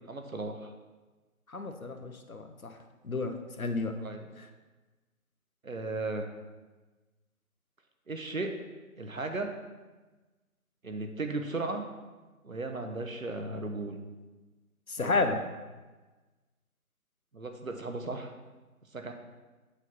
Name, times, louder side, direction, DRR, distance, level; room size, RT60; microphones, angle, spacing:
voice 1, 0.1-0.7 4.0-4.3 5.6-6.3 8.1-8.5 9.0-9.5 10.8-11.8 12.4-14.0 15.0-15.4 17.3-18.3 18.9-19.1, right 2 dB, 65° right, 5 dB, 1.1 m, -36 dB
voice 2, 1.5-2.7 3.0-3.9 14.9-15.4, left 3 dB, 70° left, 7 dB, 1.0 m, -31 dB
8.1 x 4.3 x 5.8 m, 1.2 s
figure-of-eight pair, 165°, 44 cm